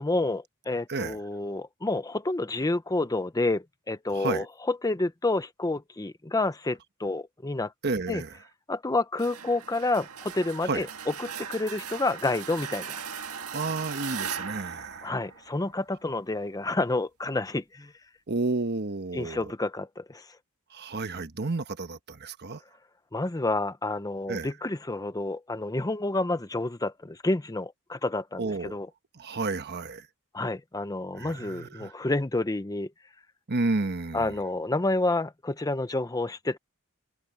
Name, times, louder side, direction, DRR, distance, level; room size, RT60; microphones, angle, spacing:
voice 1, 0.0-7.7 8.1-8.2 8.7-13.0 15.0-17.9 19.1-20.3 23.1-28.9 30.3-32.9 34.1-36.6, left 2 dB, 15° left, 0.7 m, -29 dB
voice 2, 4.1-4.5 7.8-8.3 10.7-10.9 13.5-15.1 18.3-19.5 20.7-22.6 24.3-24.5 28.4-28.8 29.2-30.1 31.2-31.9 33.5-34.4, right 3 dB, 50° right, 1.2 m, -31 dB
sound 1, 9.2-15.9, right 7 dB, 75° right, 1.8 m, -39 dB
head